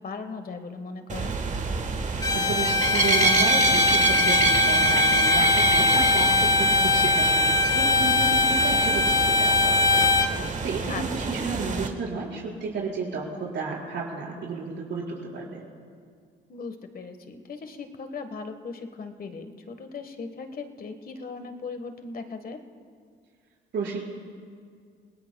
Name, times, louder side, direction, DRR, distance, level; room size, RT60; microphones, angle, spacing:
voice 1, 0.0-1.4 10.9-11.0 16.5-22.6, left 4 dB, 45° left, 8 dB, 1.3 m, -38 dB
sound 1, 1.1-11.9, right 4 dB, 40° right, 1.3 m, -28 dB
Bowed string instrument, 2.2-10.3, left 2 dB, 15° left, 0.6 m, -21 dB
voice 2, 2.3-10.0 10.6-15.6 23.7-24.0, right 4 dB, 65° right, -3 dB, 4.8 m, -32 dB
29.0 x 19.0 x 2.3 m, 2.1 s
cardioid pair, 90°, 20 cm